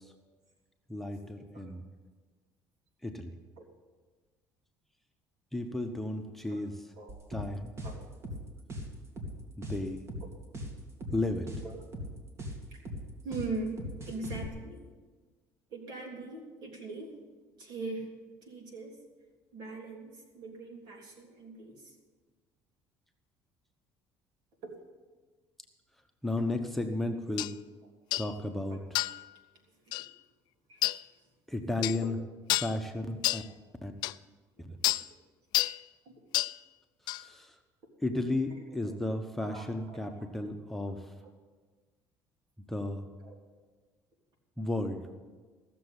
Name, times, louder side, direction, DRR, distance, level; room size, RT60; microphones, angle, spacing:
voice 1, 0.9-1.8 3.0-3.3 5.5-6.8 7.3-7.7 9.6-10.1 11.1-11.5 26.2-27.5 28.2-28.8 31.5-32.2 32.6-33.4 33.8-33.9 34.6-34.8 37.2-37.5 38.0-41.0 42.6-43.1 44.6-45.0, left 2 dB, 5° left, 3 dB, 1.1 m, -33 dB
sound 1, 7.1-14.5, equal, 35° right, 2.3 m, -40 dB
voice 2, 13.2-13.8 14.0-14.8 15.7-17.2 17.6-18.1 18.4-19.0 19.5-21.9 24.6-24.7 28.7-28.8 29.9-30.0 30.7-31.0 32.0-32.1 34.9-35.0 36.0-36.1 38.5-39.0 39.5-40.0 43.2-43.3, right 3 dB, 70° right, 1 dB, 3.4 m, -41 dB
sound 2, 27.4-27.5 28.1-28.3 28.9-29.2 29.9-30.1 30.8-31.0 31.8-32.0 32.5-32.8 33.2-33.5 34.0-34.1 34.8-35.1 35.5-35.8 36.3-36.6 37.1-37.2, left 17 dB, 75° left, 0.3 m, -29 dB
16.0 x 6.9 x 8.2 m, 1.4 s
cardioid pair, 100°, 8 cm